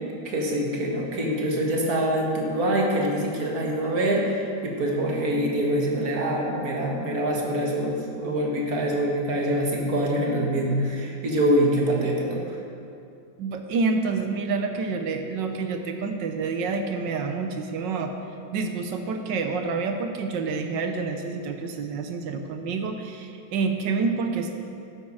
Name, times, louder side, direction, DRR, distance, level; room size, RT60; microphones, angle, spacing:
voice 1, 0.3-4.3 4.6-12.4, right 1 dB, 50° right, -1 dB, 1.9 m, -25 dB
voice 2, 13.4-18.1 18.5-24.5, right 4 dB, 70° right, 5 dB, 1.5 m, -28 dB
12.5 x 8.5 x 4.8 m, 2.5 s
omnidirectional pair, 2.1 m